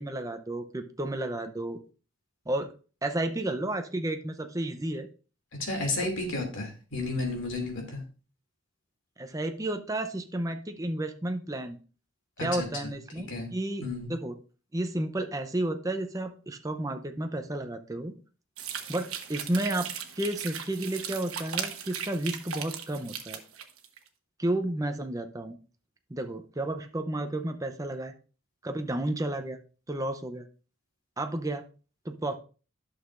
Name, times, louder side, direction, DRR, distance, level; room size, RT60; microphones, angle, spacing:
voice 1, 0.0-1.8 2.5-2.7 3.0-5.1 9.2-11.8 12.4-13.8 14.1-14.4 14.7-18.1 18.9-19.9 20.2-23.4 24.4-25.6 26.1-28.1 28.6-29.6 29.9-30.5 31.2-31.6 32.0-32.4, right 1 dB, 15° right, 6 dB, 0.5 m, -32 dB
voice 2, 5.6-8.0 12.4-12.9 13.3-13.5 13.8-14.1, left 2 dB, 60° left, 2 dB, 2.5 m, -32 dB
sound 1, 18.6-24.0, right 8 dB, 85° right, 1.1 m, -37 dB
11.0 x 6.4 x 2.5 m, 0.36 s
head